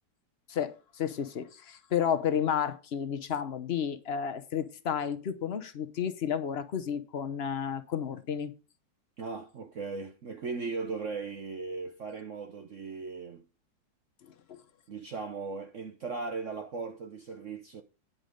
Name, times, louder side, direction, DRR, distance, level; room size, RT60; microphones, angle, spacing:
voice 1, 0.5-8.5 14.2-14.6, left 8 dB, 55° left, 0.6 m, -32 dB
voice 2, 9.2-13.4 14.9-17.8, right 4 dB, 55° right, 0.8 m, -38 dB
9.7 x 5.8 x 5.1 m
omnidirectional pair, 2.1 m